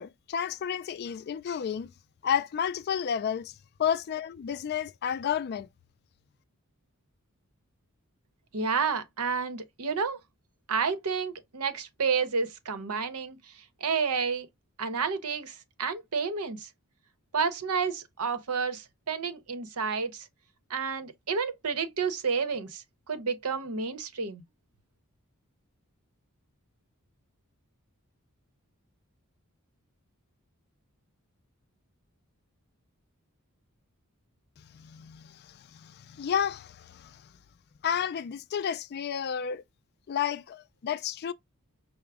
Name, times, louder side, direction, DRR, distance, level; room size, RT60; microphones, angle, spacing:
voice 1, 0.0-1.9 2.2-3.5 3.8-5.7 34.7-37.2 37.8-39.6 40.1-41.3, left 8 dB, 45° left, 0.3 m, -31 dB
voice 2, 8.5-10.2 10.7-13.4 13.8-14.5 14.8-16.7 17.3-20.2 20.7-24.4, right 5 dB, 90° right, 0.8 m, -30 dB
5.9 x 2.1 x 3.4 m
head